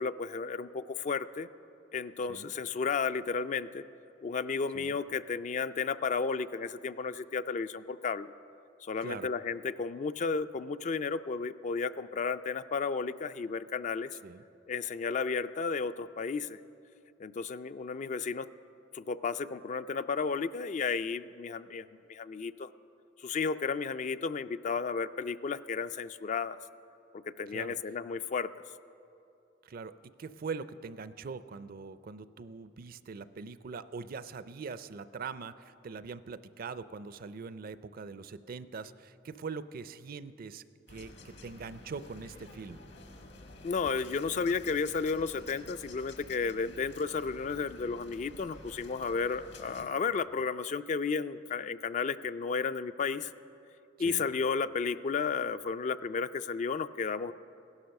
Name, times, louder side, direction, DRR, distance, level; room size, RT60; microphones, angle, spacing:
voice 1, 0.0-1.5 1.9-3.8 4.2-8.3 8.8-14.1 14.7-16.6 17.2-18.5 18.9-22.7 23.2-26.6 27.2-28.5 43.6-53.3 54.0-57.3, left 5 dB, 40° left, 13 dB, 0.3 m, -33 dB
voice 2, 30.2-42.8 54.0-54.3, right 5 dB, 50° right, 14 dB, 0.4 m, -42 dB
sound 1, 40.9-49.9, left 2 dB, 65° left, 1.4 m, -51 dB
16.5 x 11.5 x 6.5 m, 2.7 s
head